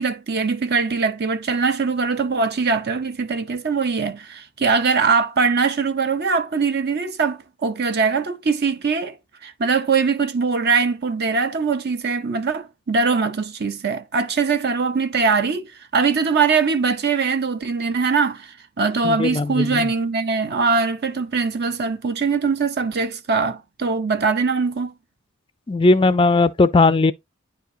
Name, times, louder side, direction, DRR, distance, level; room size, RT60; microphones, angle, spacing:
voice 1, 0.0-9.2 9.4-15.7 15.9-24.9, right 4 dB, 50° right, 0.7 m, -22 dB
voice 2, 19.0-19.9 25.7-27.1, left 3 dB, 25° left, 0.4 m, -17 dB
9.5 x 4.5 x 2.7 m
head